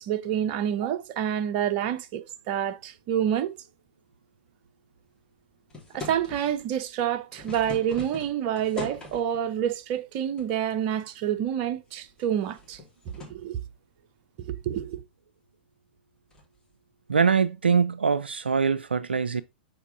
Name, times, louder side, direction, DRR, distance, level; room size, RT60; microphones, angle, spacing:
voice 1, 0.0-3.5 5.9-12.8 13.3-13.6 14.4-15.0, right 10 dB, 45° right, 0.8 m, -28 dB
sound 1, 5.7-6.7 7.1-9.4 10.4-10.9 11.3-11.4 12.0-13.4 16.3-16.6, left 3 dB, 15° left, 3.2 m, -41 dB
voice 2, 17.1-19.4, right 6 dB, 85° right, 0.4 m, -23 dB
7.2 x 4.6 x 3.5 m
figure-of-eight pair, 105°, 6 cm